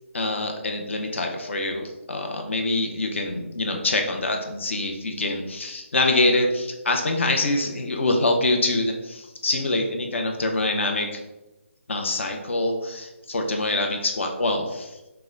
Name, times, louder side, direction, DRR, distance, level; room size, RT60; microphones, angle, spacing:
voice 1, 0.1-11.2 11.9-15.1, left 2 dB, 65° left, 3 dB, 0.9 m, -25 dB
5.8 x 2.3 x 3.8 m, 1.0 s
hypercardioid pair, 165°, 7 cm